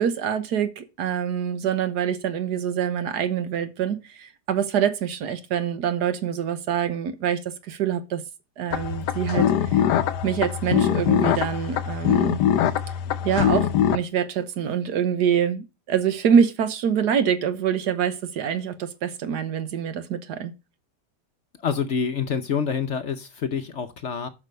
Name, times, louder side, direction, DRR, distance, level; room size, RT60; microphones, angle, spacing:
voice 1, 0.0-7.4 7.7-8.2 8.6-9.8 10.2-12.4 13.2-20.5, right 8 dB, 75° right, 1.5 m, -25 dB
sound 1, 8.7-14.0, left 9 dB, 90° left, 1.3 m, -22 dB
voice 2, 21.6-24.3, left 6 dB, 55° left, 1.0 m, -27 dB
7.3 x 6.2 x 6.7 m
omnidirectional pair, 1.8 m